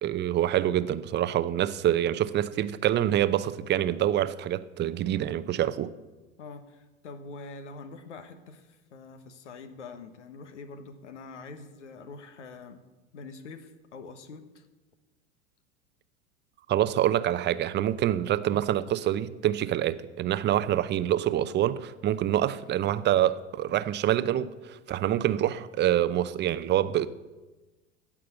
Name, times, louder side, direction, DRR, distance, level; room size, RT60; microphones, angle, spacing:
voice 1, 0.0-5.9 16.7-27.1, right 12 dB, 30° right, 0.7 m, -26 dB
voice 2, 6.4-12.8 13.1-14.7, left 4 dB, 75° left, 1.4 m, -45 dB
16.0 x 6.2 x 7.8 m
figure-of-eight pair, 85°, 36 cm